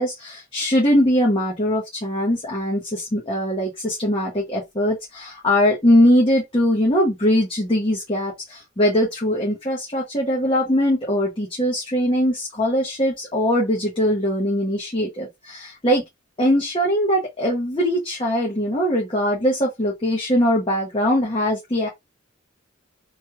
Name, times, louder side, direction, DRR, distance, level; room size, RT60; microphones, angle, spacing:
voice 1, 0.0-16.0 16.4-21.9, equal, 25° left, 0.9 m, -21 dB
3.2 x 2.3 x 3.0 m
head